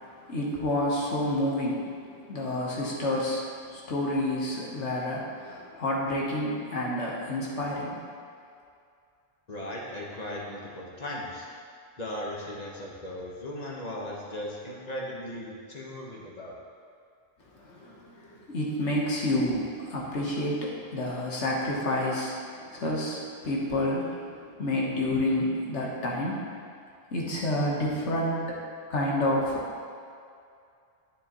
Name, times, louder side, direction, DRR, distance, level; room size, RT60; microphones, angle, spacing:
voice 1, 0.0-3.4 3.7-8.0 17.5-26.5 27.1-28.6 28.9-29.7, left 1 dB, 75° left, -3 dB, 1.5 m, -29 dB
voice 2, 9.5-11.5 12.0-16.6, left 1 dB, 35° left, -3 dB, 1.2 m, -37 dB
9.7 x 7.4 x 3.0 m, 2.4 s
omnidirectional pair, 1.2 m